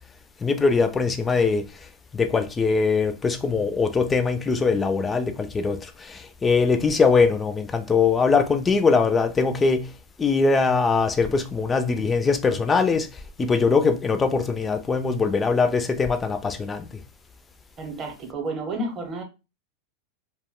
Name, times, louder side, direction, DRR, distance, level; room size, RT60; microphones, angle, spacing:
voice 1, 0.4-1.7 2.1-9.9 10.2-13.1 13.4-16.9, left 4 dB, 15° left, 0.4 m, -22 dB
voice 2, 17.8-19.2, right 2 dB, 30° right, 0.8 m, -31 dB
2.3 x 2.1 x 3.6 m
hypercardioid pair, 125°, 0 cm